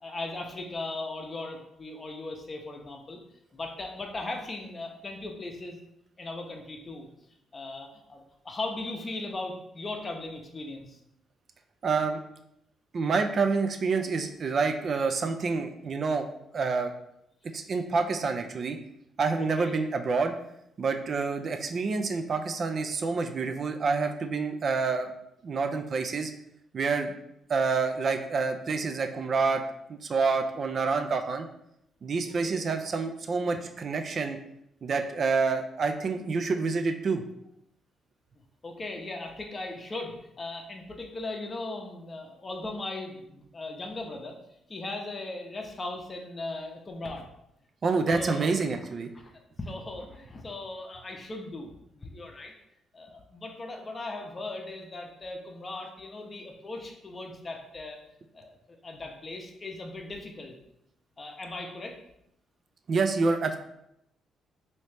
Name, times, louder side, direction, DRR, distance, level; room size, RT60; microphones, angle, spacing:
voice 1, 0.0-3.2 3.5-5.8 6.2-7.1 7.5-11.0 19.6-19.7 32.4-32.6 38.6-44.4 44.7-47.2 47.9-48.6 49.1-49.3 49.6-52.5 52.9-58.0 58.3-60.6 61.2-62.0, left 2 dB, 30° left, 3 dB, 0.6 m, -38 dB
voice 2, 11.8-12.2 12.9-16.3 16.5-16.9 17.5-18.8 19.2-20.3 20.8-25.1 25.4-26.3 26.7-27.1 27.5-29.6 29.9-31.5 32.0-34.4 34.8-37.2 47.8-49.1 62.9-63.6, right 4 dB, 50° right, 6 dB, 0.3 m, -27 dB
3.0 x 2.7 x 3.3 m, 0.79 s
cardioid pair, 90°, 0 cm